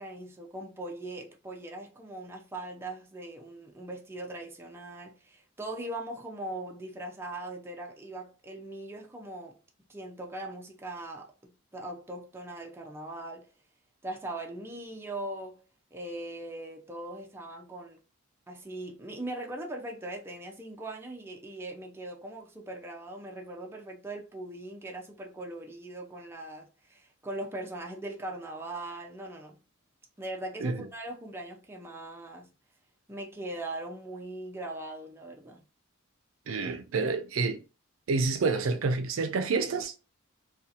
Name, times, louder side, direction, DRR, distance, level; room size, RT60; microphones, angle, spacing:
voice 1, 0.0-9.6 9.9-13.5 14.0-15.6 15.9-18.0 18.5-29.6 30.2-32.5 33.1-35.6, right 1 dB, 10° right, 0.4 m, -40 dB
voice 2, 36.5-37.6 38.1-40.0, right 4 dB, 70° right, 0.4 m, -28 dB
2.7 x 2.3 x 2.4 m
head